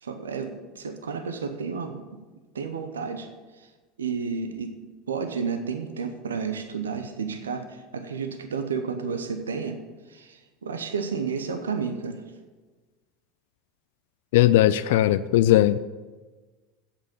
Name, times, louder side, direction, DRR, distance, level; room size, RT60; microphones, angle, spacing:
voice 1, 0.0-2.1 2.5-3.3 3.6-3.7 4.0-4.7 5.1-9.8 10.1-12.2, right 5 dB, 85° right, 7 dB, 0.8 m, -31 dB
voice 2, 14.3-15.8, left 13 dB, 70° left, 14 dB, 0.3 m, -18 dB
8.1 x 7.1 x 7.2 m, 1.3 s
hypercardioid pair, 80°, 0 cm